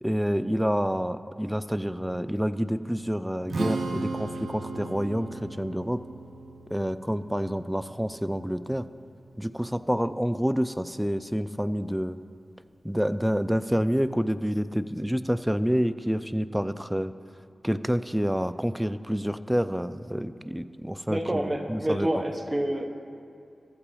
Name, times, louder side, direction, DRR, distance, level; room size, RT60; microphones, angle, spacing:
voice 1, 0.0-6.0 6.7-8.9 9.4-12.2 12.8-17.1 17.6-22.1, equal, 5° right, 13 dB, 0.3 m, -28 dB
Strum, 3.5-9.8, right 3 dB, 85° right, 0.6 m, -37 dB
voice 2, 21.1-22.8, right 1 dB, 20° right, 3 dB, 1.0 m, -28 dB
14.5 x 5.5 x 4.2 m, 2.5 s
wide cardioid pair, 65°, 0 cm